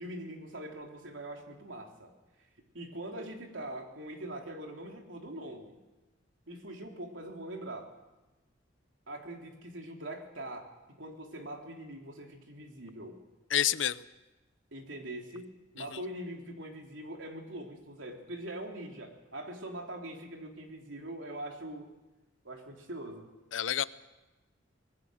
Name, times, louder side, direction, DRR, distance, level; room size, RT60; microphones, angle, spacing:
voice 1, 0.0-2.1 2.7-5.8 6.5-7.9 9.1-13.2 14.7-21.9 22.4-23.3, right 1 dB, 85° right, 2 dB, 3.4 m, -42 dB
voice 2, 13.5-14.0 15.8-16.0 23.5-23.8, left 10 dB, 85° left, 16 dB, 0.7 m, -29 dB
25.5 x 19.0 x 6.5 m, 1.1 s
head